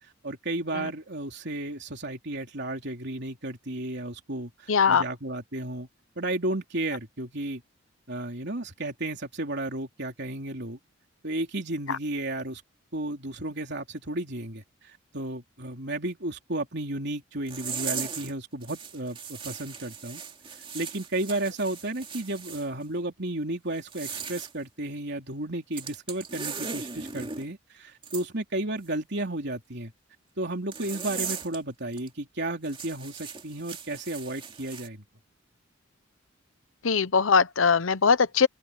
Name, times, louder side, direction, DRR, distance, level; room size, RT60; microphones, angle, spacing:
voice 1, 0.0-5.9 6.2-7.6 8.1-10.8 11.2-12.6 12.9-20.2 20.7-29.9 30.4-35.0, right 1 dB, 60° right, 3.4 m, -33 dB
voice 2, 4.7-5.0 36.8-38.5, left 5 dB, 80° left, 0.8 m, -21 dB
sound 1, 17.5-18.3 18.6-22.7 23.8-24.5 25.7-27.5 28.0-28.2 30.7-31.6 31.9-32.1 32.6-34.9, right 6 dB, 25° right, 2.6 m, -38 dB
head